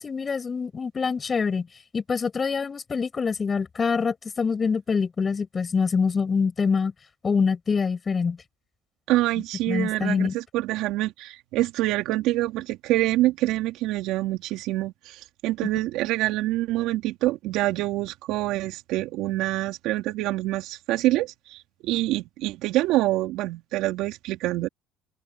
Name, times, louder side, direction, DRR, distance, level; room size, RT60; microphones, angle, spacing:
voice 1, 0.0-1.7 1.9-6.9 7.2-8.4 9.7-10.4 15.6-15.7, left 5 dB, 35° left, 7.5 m, -25 dB
voice 2, 9.1-24.7, right 17 dB, 75° right, 3.4 m, -26 dB
open air
supercardioid pair, 80°, 0 cm